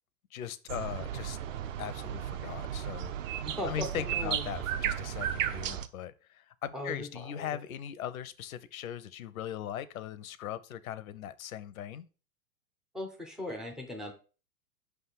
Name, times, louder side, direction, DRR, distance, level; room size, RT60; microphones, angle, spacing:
voice 1, 0.3-1.4 1.8-12.0, left 10 dB, 70° left, 0.7 m, -40 dB
sound 1, 0.7-5.9, right 10 dB, 60° right, 0.7 m, -34 dB
voice 2, 3.4-4.5 6.7-7.5 12.9-14.1, left 1 dB, ahead, 0.3 m, -38 dB
5.4 x 3.5 x 5.6 m
hypercardioid pair, 105°, 44 cm